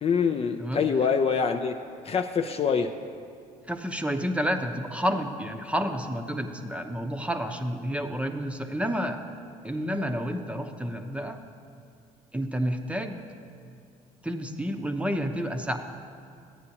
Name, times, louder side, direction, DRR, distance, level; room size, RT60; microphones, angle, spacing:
voice 1, 0.0-1.8 2.0-2.9, left 6 dB, 35° left, 4 dB, 0.4 m, -25 dB
voice 2, 3.7-9.2 9.6-11.4 12.3-13.2 14.2-15.8, equal, 5° right, 5 dB, 0.7 m, -30 dB
13.0 x 9.5 x 2.9 m, 2.3 s
hypercardioid pair, 65°, 18 cm